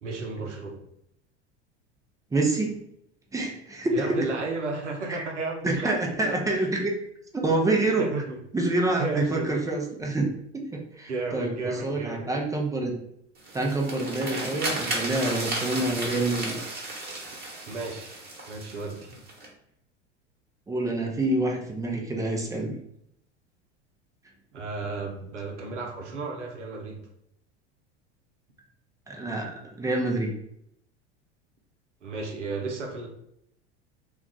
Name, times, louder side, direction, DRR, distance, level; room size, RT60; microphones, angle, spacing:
voice 1, 0.0-0.8 3.9-6.7 8.0-8.4 9.0-9.5 11.1-12.3 17.7-18.1 18.5-19.2 24.5-27.1 32.0-33.1, right 3 dB, 90° right, 2 dB, 0.7 m, -33 dB
voice 2, 2.3-2.8 3.3-4.2 5.1-5.2 5.6-6.9 7.3-8.1 8.5-12.9 13.5-16.6 20.7-22.8 29.1-30.3, right 2 dB, 10° right, 0 dB, 0.5 m, -27 dB
sound 1, 13.4-19.5, right 2 dB, 25° right, 1.1 m, -34 dB
2.4 x 2.3 x 3.7 m, 0.75 s
hypercardioid pair, 85°, 35 cm